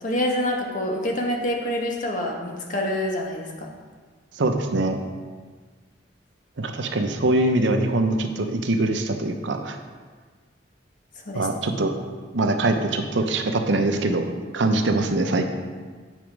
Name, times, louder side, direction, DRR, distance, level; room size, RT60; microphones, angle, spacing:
voice 1, 0.0-3.7 11.3-11.5, left 1 dB, 45° left, 0 dB, 1.2 m, -26 dB
voice 2, 4.4-5.0 6.6-9.8 11.3-11.9 12.3-15.5, right 2 dB, 85° right, 5 dB, 0.7 m, -23 dB
9.0 x 5.1 x 4.6 m, 1.5 s
head